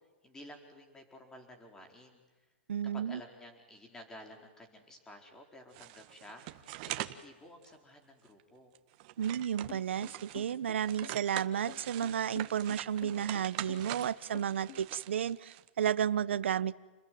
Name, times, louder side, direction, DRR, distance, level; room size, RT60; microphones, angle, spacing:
voice 1, 0.2-2.2 2.9-8.7, left 1 dB, 10° left, 4 dB, 4.5 m, -52 dB
voice 2, 2.7-3.2 9.2-16.8, right 9 dB, 85° right, 17 dB, 1.0 m, -32 dB
sound 1, 5.7-7.2 7.6-7.7 8.3-8.4 8.8-10.5 10.8-15.9, right 16 dB, 45° right, 1.5 m, -43 dB
sound 2, 9.7-14.8, left 12 dB, 40° left, 1.9 m, -49 dB
29.5 x 21.0 x 9.5 m, 1.2 s
hypercardioid pair, 155°, 6 cm